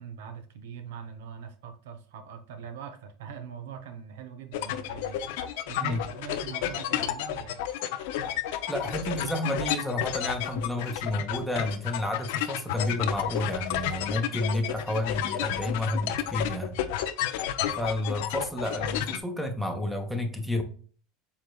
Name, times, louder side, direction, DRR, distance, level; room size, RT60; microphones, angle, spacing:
voice 1, 0.0-5.3 5.7-7.6, right 7 dB, 85° right, 8 dB, 0.7 m, -42 dB
sound 1, 4.5-19.2, left 11 dB, 75° left, 0.4 m, -31 dB
voice 2, 8.7-16.8 17.8-20.6, left 1 dB, ahead, 2 dB, 0.8 m, -30 dB
4.8 x 3.4 x 2.3 m, 0.43 s
supercardioid pair, 105°, 0 cm